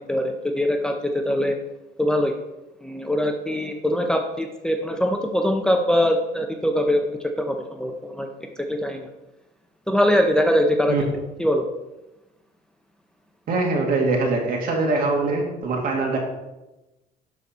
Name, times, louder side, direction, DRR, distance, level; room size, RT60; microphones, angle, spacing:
voice 1, 0.1-1.6 2.0-2.3 2.8-8.3 8.7-9.1 9.9-11.1 11.4-11.7, equal, 5° left, 3 dB, 0.7 m, -22 dB
voice 2, 13.5-16.2, right 3 dB, 60° right, 0 dB, 2.2 m, -23 dB
11.5 x 4.1 x 4.3 m, 1.0 s
cardioid pair, 110°, 17 cm